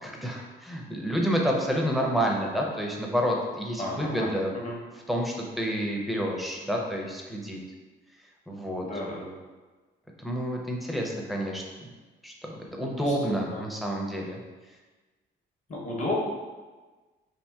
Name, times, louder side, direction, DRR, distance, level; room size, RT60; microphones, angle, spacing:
voice 1, 0.0-4.5 5.1-7.6 8.5-8.9 10.2-11.6 12.2-14.4, equal, ahead, -1 dB, 0.5 m, -29 dB
voice 2, 3.8-4.8 8.8-9.3 12.7-13.1 13.5-13.6 15.7-16.1, left 1 dB, 35° left, -3 dB, 0.8 m, -34 dB
2.8 x 2.8 x 2.2 m, 1.3 s
cardioid pair, 90°, 20 cm